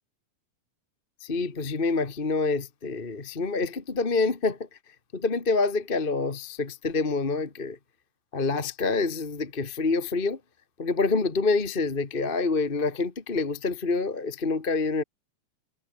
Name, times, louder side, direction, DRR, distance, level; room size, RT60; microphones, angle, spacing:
voice 1, 1.2-4.6 5.1-7.8 8.3-10.4 10.8-15.0, left 3 dB, 25° left, 1.4 m, -27 dB
omnidirectional pair, 3.4 m